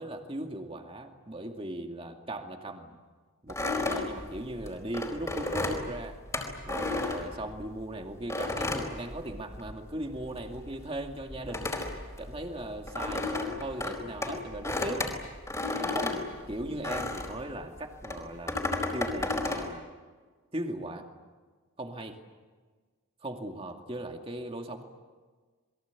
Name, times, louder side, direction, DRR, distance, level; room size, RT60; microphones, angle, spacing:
voice 1, 0.0-3.0 3.4-6.2 6.7-11.8 12.2-15.1 15.8-18.6 18.9-19.9 20.5-21.1 21.8-22.2 23.2-24.8, right 1 dB, 25° right, 3 dB, 2.4 m, -38 dB
sound 1, 3.5-7.8 8.3-9.8 10.0-17.4 18.0-19.7, left 2 dB, 15° left, 4.4 m, -33 dB
28.0 x 22.5 x 8.4 m, 1.4 s
head